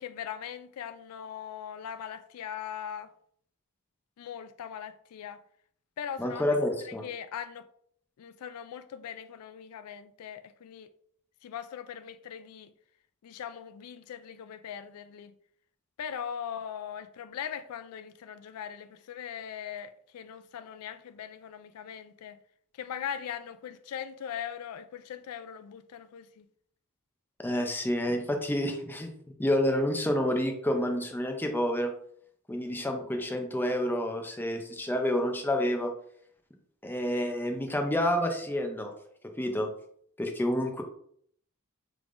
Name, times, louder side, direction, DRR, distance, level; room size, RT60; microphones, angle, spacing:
voice 1, 0.0-3.1 4.2-5.4 6.0-6.4 6.8-7.7 8.2-10.9 11.4-12.7 13.2-15.3 16.0-22.4 22.8-26.5, left 8 dB, 80° left, 0.3 m, -40 dB
voice 2, 6.2-7.1 27.4-29.1 29.4-31.9 32.5-35.9 36.8-38.9 39.4-39.7 40.2-40.8, left 1 dB, 10° left, 0.5 m, -29 dB
4.8 x 3.5 x 2.5 m
head